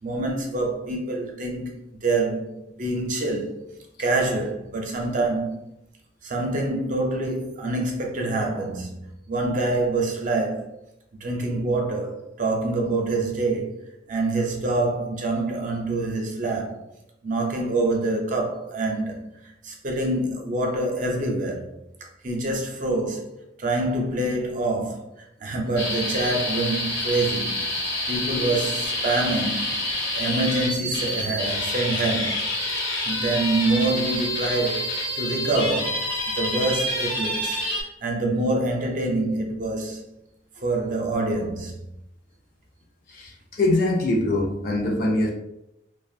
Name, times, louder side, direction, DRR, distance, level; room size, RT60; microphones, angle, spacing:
voice 1, 0.0-3.6 4.0-5.6 6.2-10.7 11.2-16.8 17.2-19.4 19.6-21.7 22.2-23.3 23.6-25.0 25.4-27.7 28.1-29.7 30.1-32.4 33.0-34.9 35.2-37.6 38.0-40.0 40.6-41.8, right 2 dB, 45° right, 0.5 m, -26 dB
sound 1, 25.8-37.8, left 1 dB, 70° left, 0.9 m, -28 dB
voice 2, 43.1-45.3, left 2 dB, 50° left, 0.5 m, -23 dB
2.4 x 2.1 x 2.6 m
head